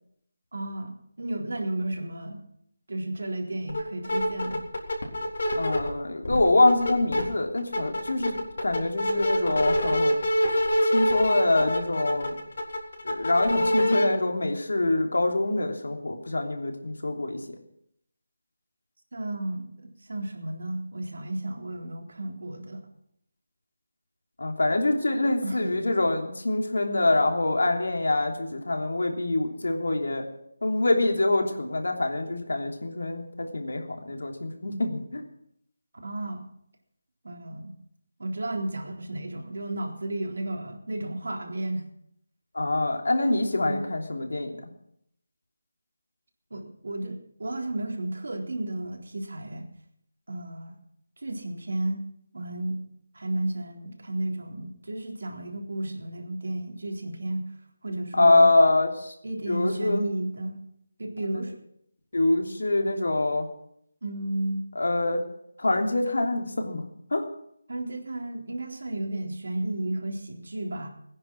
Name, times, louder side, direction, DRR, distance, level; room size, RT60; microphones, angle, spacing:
voice 1, 0.5-2.4 2.9-4.7 19.1-22.8 25.4-25.9 36.0-36.5 37.2-37.7 38.2-41.8 43.7-43.9 46.5-49.7 50.3-50.7 51.2-52.0 52.3-52.8 53.1-57.5 57.8-58.5 59.2-60.6 61.0-61.6 64.0-64.6 67.7-70.9, right 1 dB, 70° right, 1 dB, 3.8 m, -33 dB
sound 1, 3.7-3.8 4.0-5.9 6.2-7.2 7.6-14.0, left 1 dB, 60° left, 4.1 m, -25 dB
voice 2, 5.5-10.1 10.8-12.4 13.0-17.4 24.4-30.2 30.6-35.2 42.5-44.6 58.1-59.1 59.5-60.0 62.1-63.5 64.7-65.2 65.6-66.8 67.1-67.2, left 2 dB, 80° left, 3 dB, 3.1 m, -25 dB
19.0 x 10.0 x 6.3 m, 0.73 s
figure-of-eight pair, 170°, 0 cm